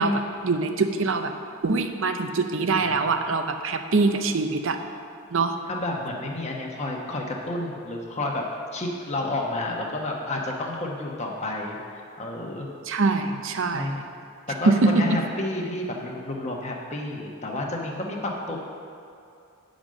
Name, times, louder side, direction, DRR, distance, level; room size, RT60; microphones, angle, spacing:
voice 1, 0.0-1.3 1.6-4.8 5.3-5.6 12.9-13.9 14.7-15.2, right 3 dB, 65° right, 7 dB, 0.6 m, -23 dB
voice 2, 5.7-8.4 8.7-12.7 13.7-14.1 14.5-18.6, left 2 dB, 30° left, 0 dB, 1.1 m, -30 dB
9.0 x 5.2 x 6.4 m, 2.5 s
head